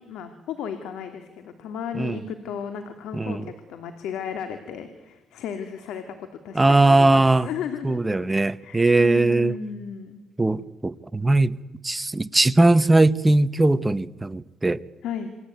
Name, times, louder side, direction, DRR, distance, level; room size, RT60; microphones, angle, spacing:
voice 1, 0.0-8.3 8.6-10.2 15.0-15.3, left 7 dB, 85° left, 2.8 m, -34 dB
voice 2, 3.1-3.4 6.5-7.5 7.8-9.6 10.4-11.6 11.8-14.8, right 2 dB, 15° right, 1.1 m, -19 dB
28.5 x 22.5 x 9.4 m
cardioid pair, 90°, 0 cm